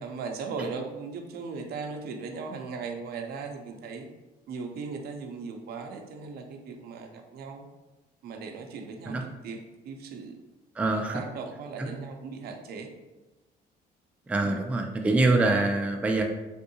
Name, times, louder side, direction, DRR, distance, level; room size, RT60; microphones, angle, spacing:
voice 1, 0.0-4.1 4.5-7.7 8.2-10.4 10.9-12.9 14.4-14.6, right 4 dB, 65° right, 4 dB, 0.5 m, -38 dB
voice 2, 10.8-11.2 11.8-11.9 14.3-16.2, right 2 dB, 10° right, 2 dB, 0.3 m, -24 dB
3.5 x 2.6 x 2.7 m, 1.1 s
cardioid pair, 110°, 17 cm